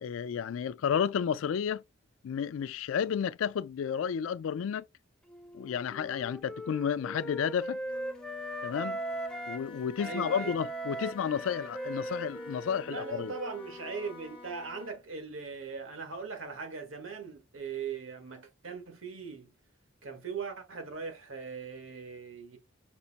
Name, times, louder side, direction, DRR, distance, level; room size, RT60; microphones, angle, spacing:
voice 1, 0.0-1.8 2.2-4.8 5.5-7.8 8.6-9.0 9.5-13.3, left 7 dB, 80° left, 0.3 m, -32 dB
Wind instrument woodwind instrument, 5.3-9.7 10.0-14.5, right 1 dB, 5° left, 0.4 m, -40 dB
Wind instrument woodwind instrument 2, 7.8-15.0, left 2 dB, 25° left, 0.9 m, -49 dB
voice 2, 10.0-10.5 12.9-19.5 20.0-22.6, right 5 dB, 85° right, 1.5 m, -40 dB
5.4 x 2.1 x 4.0 m
head